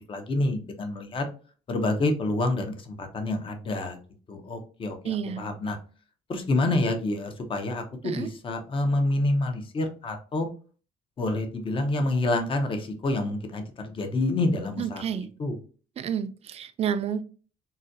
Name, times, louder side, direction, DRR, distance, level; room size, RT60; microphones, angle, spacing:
voice 1, 0.1-1.3 1.7-4.0 4.3-5.8 6.3-10.5 11.2-15.0 15.4-15.5, left 2 dB, 30° left, 6 dB, 0.7 m, -27 dB
voice 2, 5.0-5.4 8.0-8.3 14.8-15.3 16.0-17.2, right 8 dB, 40° right, 11 dB, 0.4 m, -30 dB
3.9 x 2.2 x 2.6 m, 0.38 s
cardioid pair, 110°, 17 cm